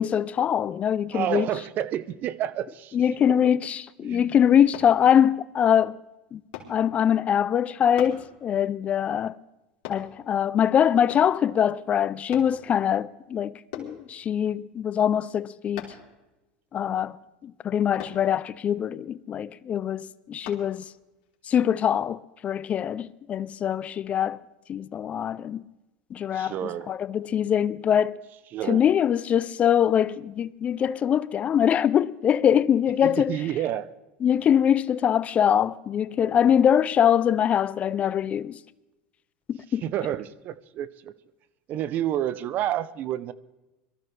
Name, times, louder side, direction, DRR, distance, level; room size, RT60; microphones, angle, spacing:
voice 1, 0.0-1.5 2.9-6.0 6.3-6.4 6.7-9.4 9.9-15.9 16.7-17.2 17.4-20.9 21.5-24.4 24.7-25.6 26.1-26.5 26.9-28.2 28.7-33.5 34.2-38.6 39.5-39.8, left 9 dB, 30° left, 0.4 m, -23 dB
voice 2, 1.1-3.0 4.0-4.3 26.3-26.9 28.5-28.8 33.0-33.9 39.8-41.1 41.7-43.3, right 11 dB, 45° right, 0.6 m, -29 dB
sound 1, 4.7-5.0 6.5-6.8 8.0-8.2 9.8-10.1 11.1-11.4 12.3-12.6 13.7-14.0 15.8-16.1 18.0-18.2 20.5-20.6 21.2-21.3, left 10 dB, 70° left, 3.1 m, -39 dB
23.0 x 13.5 x 3.3 m
supercardioid pair, 115°, 4 cm